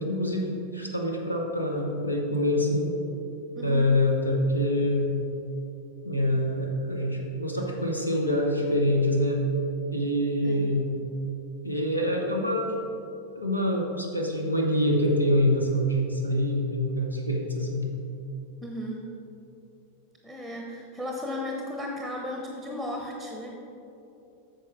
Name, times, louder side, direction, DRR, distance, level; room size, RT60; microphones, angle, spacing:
voice 1, 0.0-2.9 3.6-5.1 6.0-9.4 9.9-11.0 11.6-12.7 13.3-17.9, left 1 dB, 85° left, 0 dB, 1.0 m, -25 dB
voice 2, 3.5-3.9 10.4-10.7 18.6-19.1 20.2-23.6, left 1 dB, ahead, 1 dB, 0.9 m, -35 dB
8.8 x 6.5 x 4.7 m, 2.9 s
figure-of-eight pair, 90°, 0 cm